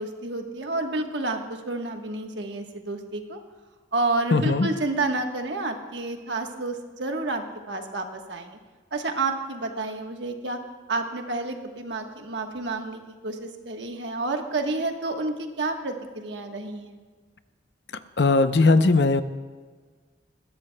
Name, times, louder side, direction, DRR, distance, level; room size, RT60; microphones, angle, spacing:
voice 1, 0.0-3.4 3.9-8.6 8.9-10.6 10.9-17.0, right 2 dB, 70° right, 4 dB, 1.2 m, -30 dB
voice 2, 4.3-4.7 18.2-19.2, left 3 dB, 65° left, 11 dB, 0.6 m, -19 dB
20.5 x 15.5 x 2.2 m, 1.5 s
head